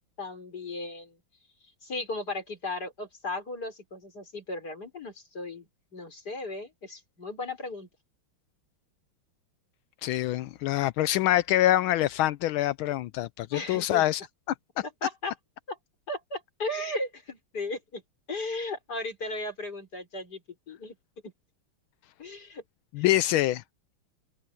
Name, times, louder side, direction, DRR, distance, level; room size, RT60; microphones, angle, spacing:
voice 1, 0.2-1.2 1.8-7.9 13.5-14.1 15.0-15.3 15.7-15.8 16.1-18.0 18.3-21.0 21.2-21.3 22.2-22.6 23.0-23.1, left 2 dB, 50° left, 5.4 m, -36 dB
voice 2, 10.0-14.2 22.9-23.6, left 14 dB, 80° left, 1.4 m, -25 dB
open air
omnidirectional pair, 2.3 m